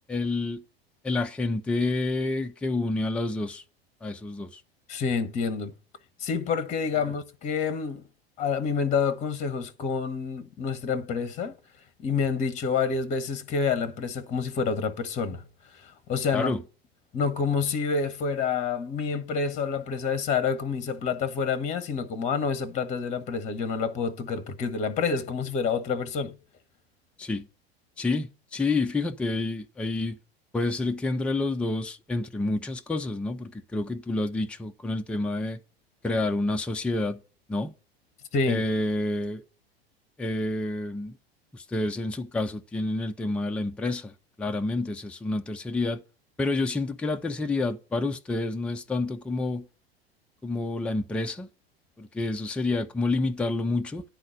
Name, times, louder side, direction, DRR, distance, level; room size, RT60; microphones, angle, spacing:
voice 1, 0.1-0.6 1.0-3.6 4.0-4.6 16.3-16.6 27.2-27.5 28.0-30.2 30.5-35.6 36.0-37.2 37.5-37.7 38.5-39.4 40.2-41.2 41.5-46.0 46.4-49.7 50.4-51.5 52.0-54.0, left 2 dB, 5° left, 0.5 m, -28 dB
voice 2, 4.9-5.7 6.2-8.1 8.4-11.6 12.0-15.4 15.7-16.5 17.1-26.4 38.3-38.6, left 5 dB, 25° left, 0.9 m, -28 dB
10.0 x 4.0 x 7.4 m
figure-of-eight pair, 85°, 31 cm